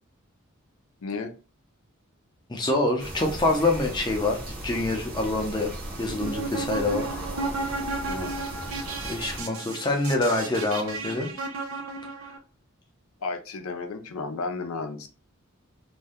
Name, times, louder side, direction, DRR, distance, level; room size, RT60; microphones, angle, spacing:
voice 1, 1.0-1.3 8.1-8.3 13.2-15.1, left 3 dB, 85° left, 6 dB, 0.5 m, -33 dB
voice 2, 2.5-5.7 6.0-7.1 9.0-11.3, left 2 dB, 20° left, 1 dB, 0.5 m, -26 dB
sound 1, 3.0-9.4, right 1 dB, 45° right, 0.8 m, -37 dB
sound 2, 6.1-12.4, right 3 dB, 75° right, 0.5 m, -34 dB
2.6 x 2.1 x 3.4 m, 0.34 s
head